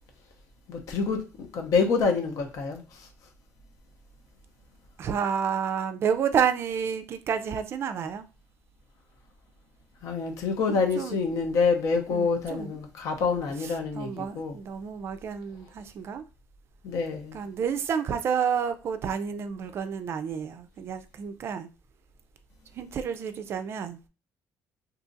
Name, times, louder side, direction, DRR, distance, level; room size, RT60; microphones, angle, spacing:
voice 1, 0.7-3.1 10.0-14.6 16.8-17.4, left 4 dB, 70° left, 0.8 m, -27 dB
voice 2, 5.0-8.3 10.7-11.2 12.1-12.8 13.6-16.2 17.3-21.7 22.7-24.0, right 7 dB, 45° right, 0.4 m, -30 dB
2.8 x 2.4 x 3.9 m
cardioid pair, 155°, 6 cm